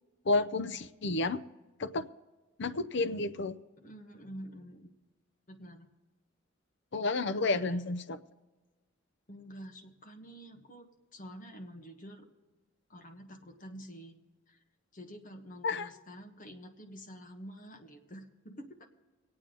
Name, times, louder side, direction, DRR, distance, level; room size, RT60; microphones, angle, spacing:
voice 1, 0.3-1.4 1.8-2.1 2.6-3.6 6.9-8.2 15.6-15.9, left 3 dB, 60° left, 9 dB, 0.6 m, -31 dB
voice 2, 3.8-4.9 5.5-5.9 7.4-7.9 9.3-12.3 12.9-14.2 14.5-14.6 14.9-18.9, equal, 40° left, 4 dB, 1.3 m, -48 dB
24.5 x 8.7 x 3.9 m, 1.3 s
head